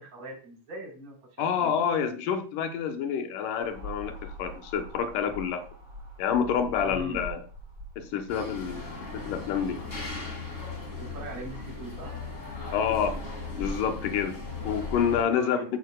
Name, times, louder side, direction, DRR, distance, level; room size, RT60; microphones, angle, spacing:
voice 1, 0.0-1.8 6.8-7.2 10.9-12.1 15.2-15.6, right 2 dB, 55° right, -1 dB, 5.2 m, -41 dB
voice 2, 1.4-5.6 6.2-7.4 8.0-8.9 9.3-9.8 12.7-13.2 13.6-15.6, left 7 dB, 80° left, 7 dB, 2.5 m, -28 dB
sound 1, 3.6-8.8, equal, 20° right, 3.9 m, -43 dB
sound 2, 8.3-15.2, left 3 dB, 25° left, 2.6 m, -37 dB
13.5 x 8.3 x 2.3 m, 0.36 s
omnidirectional pair, 3.7 m